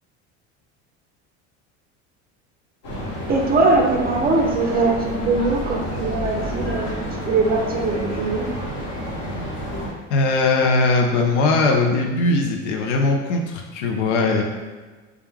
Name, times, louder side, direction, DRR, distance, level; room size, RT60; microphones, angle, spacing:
sound 1, 2.8-9.9, equal, 45° left, 1.0 m, -29 dB
voice 1, 3.3-6.9 7.2-8.6, right 3 dB, 25° right, 0 dB, 0.5 m, -21 dB
voice 2, 10.1-14.4, left 3 dB, 85° left, 2 dB, 0.5 m, -20 dB
2.3 x 2.1 x 3.1 m, 1.3 s
supercardioid pair, 90°, 35 cm